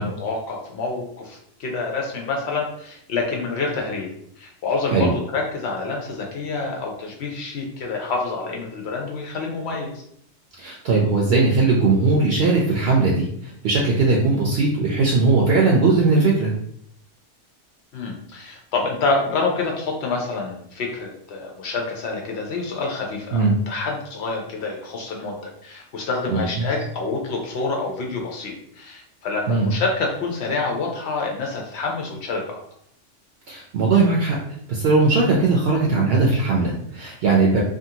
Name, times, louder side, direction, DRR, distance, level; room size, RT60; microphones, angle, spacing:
voice 1, 0.0-4.1 4.4-10.0 17.9-25.4 25.6-32.6, left 3 dB, 70° left, 0 dB, 0.8 m, -27 dB
voice 2, 10.6-16.5 23.3-23.5 26.3-26.7 29.5-29.7 33.5-34.4 34.7-37.6, right 3 dB, 65° right, -2 dB, 0.8 m, -19 dB
2.7 x 2.5 x 2.7 m, 0.69 s
omnidirectional pair, 1.2 m